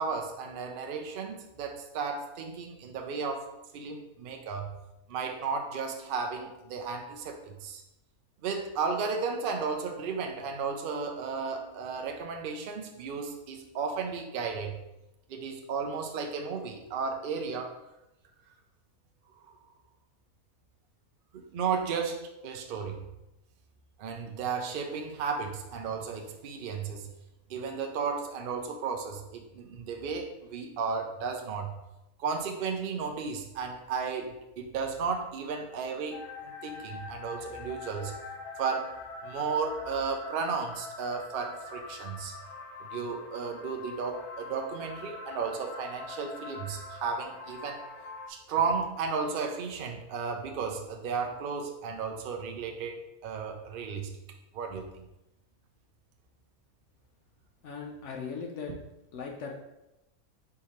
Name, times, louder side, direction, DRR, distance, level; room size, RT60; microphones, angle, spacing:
voice 1, 0.0-3.5 3.7-4.8 5.1-7.8 8.4-14.8 15.3-17.8 19.4-19.5 21.3-23.1 24.0-27.1 27.5-31.8 32.2-38.1 38.6-39.0 39.2-42.3 42.8-47.8 48.3-54.2 54.5-55.0, right 5 dB, 70° right, 4 dB, 0.5 m, -34 dB
sound 1, 36.1-48.3, left 3 dB, 90° left, 1.2 m, -43 dB
voice 2, 57.6-58.8 59.1-59.6, left 5 dB, 65° left, 1 dB, 0.8 m, -38 dB
4.6 x 3.5 x 3.0 m, 0.91 s
omnidirectional pair, 1.5 m